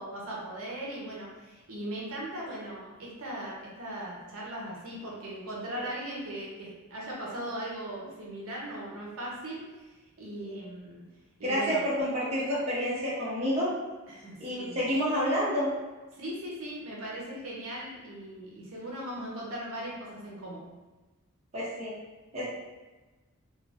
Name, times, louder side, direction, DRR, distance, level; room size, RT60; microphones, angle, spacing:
voice 1, 0.0-11.0 11.4-11.8 14.1-14.8 16.1-20.7, right 1 dB, 75° right, -4 dB, 0.7 m, -39 dB
voice 2, 11.4-13.7 14.4-15.7 21.5-21.9 22.3-22.5, equal, 30° right, -8 dB, 0.8 m, -29 dB
2.3 x 2.2 x 3.3 m, 1.2 s
head